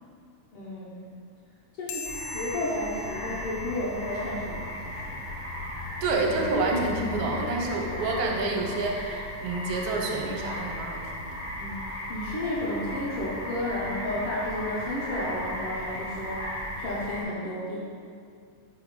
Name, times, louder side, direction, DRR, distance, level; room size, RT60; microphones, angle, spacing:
voice 1, 0.5-1.0 1.8-5.2 11.6-17.8, left 1 dB, 70° left, -6 dB, 1.4 m, -32 dB
sound 1, 1.9-4.7, left 4 dB, 90° left, 1.4 m, -42 dB
sound 2, 2.0-17.2, left 1 dB, 50° left, 0.8 m, -36 dB
voice 2, 6.0-11.4, right 3 dB, 75° right, 1 dB, 2.1 m, -28 dB
5.5 x 4.7 x 5.0 m, 2.2 s
omnidirectional pair, 3.5 m